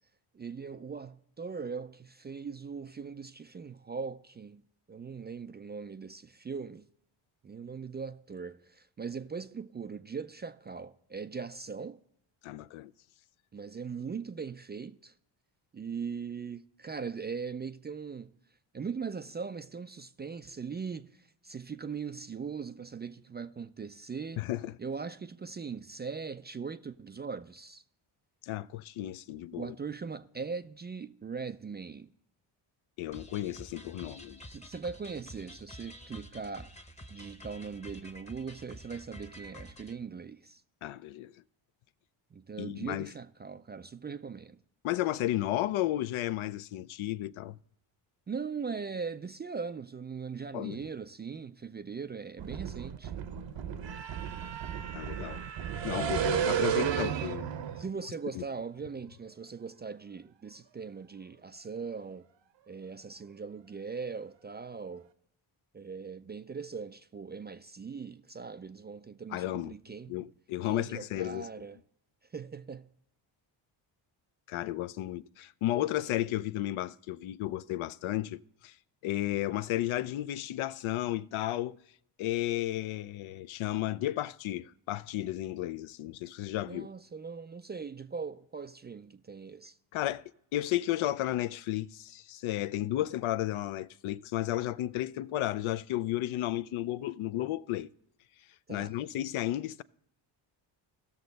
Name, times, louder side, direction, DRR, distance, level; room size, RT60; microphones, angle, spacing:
voice 1, 0.3-4.6 4.9-6.9 7.4-12.0 13.5-15.1 15.7-18.3 18.7-24.4 24.8-27.8 29.6-32.1 34.5-36.7 37.1-40.6 42.3-44.6 48.3-53.1 57.8-62.3 62.7-65.1 65.7-70.1 70.6-71.8 72.3-72.9 86.7-89.8 98.7-98.9, right 5 dB, 25° right, 0.3 m, -40 dB
voice 2, 12.4-12.9 24.4-24.8 28.4-29.7 33.0-34.4 40.8-41.3 42.6-43.1 44.8-47.6 50.5-50.8 53.3-54.0 54.9-55.4 55.8-57.5 58.3-58.4 69.3-69.7 70.1-71.5 74.5-78.8 79.0-81.8 82.2-86.9 89.9-97.9 98.7-99.8, left 14 dB, 75° left, 0.5 m, -33 dB
sound 1, 33.1-40.0, equal, 15° left, 0.9 m, -49 dB
sound 2, 52.4-57.9, right 9 dB, 60° right, 0.8 m, -33 dB
15.5 x 6.6 x 4.0 m
cardioid pair, 65°, 50 cm